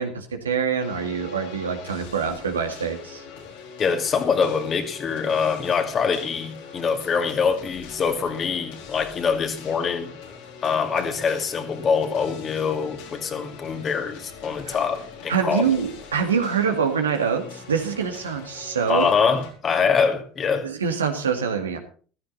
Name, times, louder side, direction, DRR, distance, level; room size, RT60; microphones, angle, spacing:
voice 1, 0.0-3.2 14.6-14.8 15.3-19.1 20.6-21.8, right 6 dB, 90° right, 2.0 m, -25 dB
sound 1, 0.8-19.5, left 6 dB, 75° left, 4.3 m, -42 dB
voice 2, 3.8-10.2 10.6-15.6 18.9-20.7, left 6 dB, 40° left, 2.4 m, -24 dB
14.5 x 13.0 x 4.1 m
hypercardioid pair, 75°, 0 cm